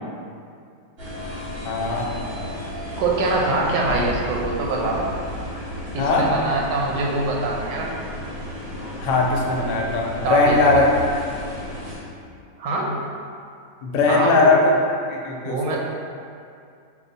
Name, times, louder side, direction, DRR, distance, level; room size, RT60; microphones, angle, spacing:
sound 1, 1.0-12.0, left 1 dB, 60° right, 0.6 m, -33 dB
voice 1, 1.6-2.1 6.0-6.3 9.0-10.9 13.8-14.7 15.1-15.8, left 3 dB, 80° left, -1 dB, 1.2 m, -19 dB
voice 2, 3.0-5.1 5.9-7.9 10.2-10.8 12.6-12.9 14.1-14.5 15.4-15.8, right 3 dB, 85° right, -2 dB, 1.2 m, -23 dB
5.0 x 2.3 x 2.6 m, 2.3 s
omnidirectional pair, 1.9 m